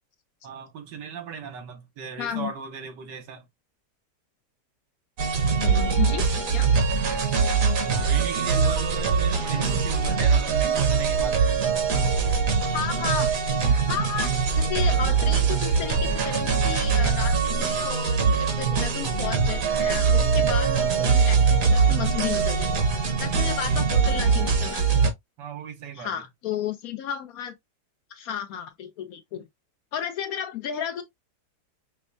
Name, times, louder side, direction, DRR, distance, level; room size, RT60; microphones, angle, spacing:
voice 1, 0.4-3.5 7.9-11.4 23.4-23.8 25.4-26.1, right 7 dB, 85° right, 1.6 m, -36 dB
voice 2, 2.2-2.5 5.6-6.7 7.3-7.4 9.5-9.6 12.7-13.3 13.6-22.7 23.2-25.0 25.9-27.5 28.1-29.5 29.9-31.0, left 9 dB, 70° left, 0.9 m, -33 dB
sound 1, 5.2-25.1, right 5 dB, 55° right, 1.2 m, -22 dB
5.2 x 2.2 x 2.5 m
omnidirectional pair, 1.8 m